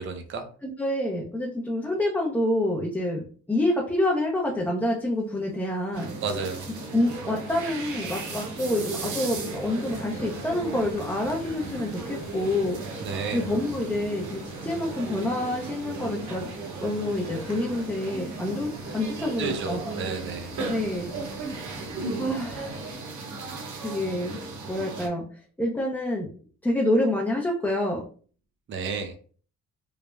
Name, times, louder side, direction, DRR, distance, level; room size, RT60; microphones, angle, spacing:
voice 1, 0.0-0.5 6.2-6.7 13.0-13.4 19.2-20.5 28.7-29.1, right 4 dB, 40° right, 6 dB, 0.5 m, -32 dB
voice 2, 0.6-6.1 6.9-12.8 13.3-16.5 16.8-19.9 20.7-21.6 22.2-22.8 23.8-24.4 24.7-25.2 25.6-26.3 26.6-28.0, left 1 dB, 5° left, -2 dB, 0.5 m, -27 dB
sound 1, 5.1-23.0, left 2 dB, 30° left, 1.0 m, -46 dB
sound 2, 5.9-25.1, right 3 dB, 75° right, 0.8 m, -36 dB
3.2 x 2.0 x 2.3 m, 0.42 s
cardioid pair, 90°, 30 cm